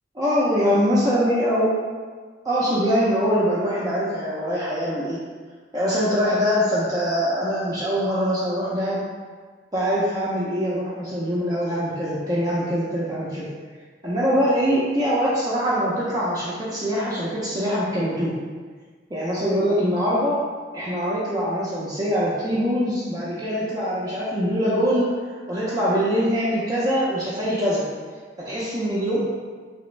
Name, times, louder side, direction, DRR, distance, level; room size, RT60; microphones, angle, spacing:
voice 1, 0.1-1.7 2.4-5.2 5.7-9.0 9.7-13.5 14.0-18.3 19.1-20.4 20.7-25.1 25.5-27.8 28.4-29.2, equal, 20° right, -8 dB, 0.5 m, -23 dB
3.3 x 3.0 x 3.2 m, 1.5 s
head